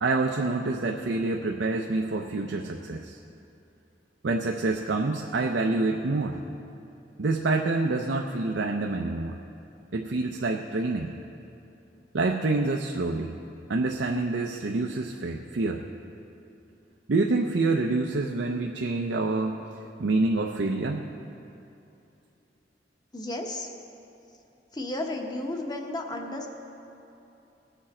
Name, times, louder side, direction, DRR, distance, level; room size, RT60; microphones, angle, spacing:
voice 1, 0.0-3.2 4.2-6.4 7.2-9.4 9.9-11.2 12.1-13.4 13.7-15.8 17.1-19.6 20.0-21.1, right 3 dB, 85° right, 2 dB, 0.6 m, -27 dB
voice 2, 23.1-23.7 24.7-26.5, left 1 dB, 25° left, 3 dB, 1.0 m, -33 dB
19.5 x 7.1 x 4.3 m, 2.8 s
head